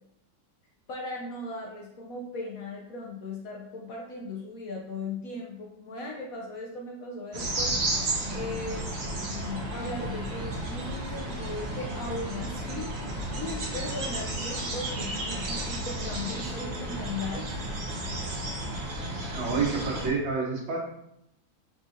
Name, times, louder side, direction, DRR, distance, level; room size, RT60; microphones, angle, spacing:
voice 1, 0.9-7.7 8.3-17.5, left 2 dB, 65° left, -1 dB, 0.9 m, -38 dB
sound 1, 7.3-20.1, right 1 dB, 50° right, 0.8 m, -33 dB
voice 2, 19.3-20.8, right 4 dB, 90° right, -2 dB, 2.0 m, -28 dB
4.7 x 4.1 x 2.6 m, 0.78 s
omnidirectional pair, 2.0 m